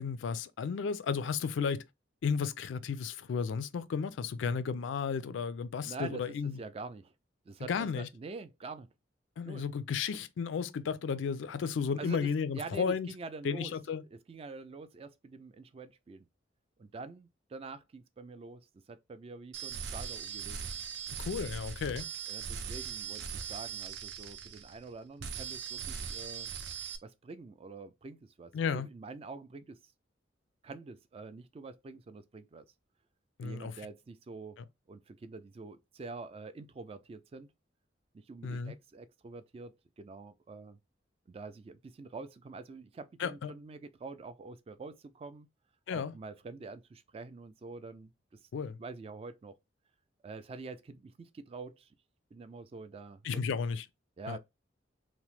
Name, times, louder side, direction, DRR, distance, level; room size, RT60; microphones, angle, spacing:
voice 1, 0.0-1.8 2.2-6.6 7.7-8.1 9.4-13.1 13.4-14.0 21.2-22.1 28.5-28.9 33.4-33.7 38.4-38.7 43.2-43.5 45.9-46.1 48.5-48.8 53.2-53.8 54.3-54.4, left 6 dB, 80° left, 0.3 m, -33 dB
voice 2, 5.8-7.1 7.5-8.9 9.4-9.6 12.0-13.7 14.1-16.2 16.8-20.6 22.3-26.5 27.0-29.8 30.6-32.7 33.4-34.6 34.9-37.5 38.1-40.8 41.3-45.5 45.9-48.1 48.8-49.6 50.2-51.9 52.3-53.4 54.2-54.4, right 3 dB, 30° right, 0.3 m, -46 dB
sound 1, 19.5-24.9 25.2-27.0, right 6 dB, 75° right, 0.6 m, -40 dB
2.9 x 2.0 x 3.0 m
head